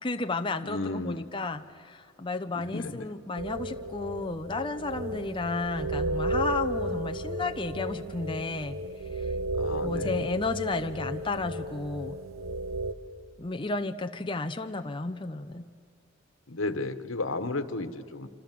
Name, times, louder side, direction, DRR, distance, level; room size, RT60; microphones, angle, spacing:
voice 1, 0.0-8.8 9.1-9.3 9.8-12.2 13.4-15.7, left 3 dB, 25° left, 7 dB, 0.7 m, -32 dB
voice 2, 0.6-1.3 2.5-3.1 9.6-10.2 16.5-18.3, left 2 dB, 80° left, 12 dB, 1.4 m, -33 dB
sound 1, 3.4-12.9, right 1 dB, 80° right, 1.1 m, -33 dB
27.0 x 26.5 x 7.6 m, 2.5 s
head